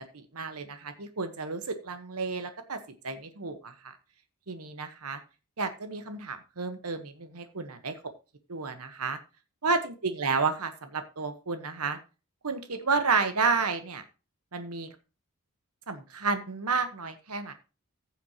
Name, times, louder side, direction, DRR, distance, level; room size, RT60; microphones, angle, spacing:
voice 1, 0.1-2.8 3.0-3.7 4.5-5.2 5.6-8.0 8.5-9.2 9.6-12.0 12.4-14.0 14.5-14.9 15.9-17.5, right 4 dB, 80° right, 9 dB, 1.2 m, -31 dB
15.5 x 7.1 x 2.9 m, 0.32 s
head